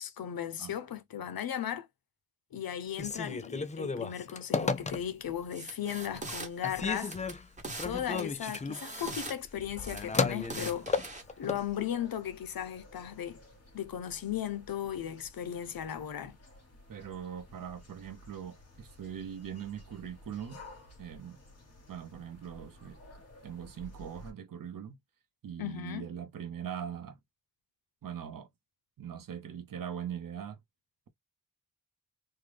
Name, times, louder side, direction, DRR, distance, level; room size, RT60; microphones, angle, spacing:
voice 1, 0.0-1.9 2.5-7.2 7.8-10.9 11.4-13.4 13.7-16.4 25.6-26.1, left 10 dB, 70° left, 0.7 m, -36 dB
Telephone, 2.9-5.4 5.9-6.4 6.6-11.7, left 4 dB, 20° left, 0.3 m, -34 dB
sound 1, 5.5-6.5 6.9-7.9 8.2-9.3 9.8-11.2, right 2 dB, 20° right, 1.0 m, -41 dB
sound 2, 9.7-24.3, left 1 dB, 45° left, 1.8 m, -54 dB
voice 2, 16.9-20.6 21.0-21.4 21.9-23.0 23.4-25.0 25.4-27.2 28.0-28.5 29.0-30.6, right 8 dB, 65° right, 0.8 m, -41 dB
3.7 x 2.2 x 3.3 m
wide cardioid pair, 160°, 36 cm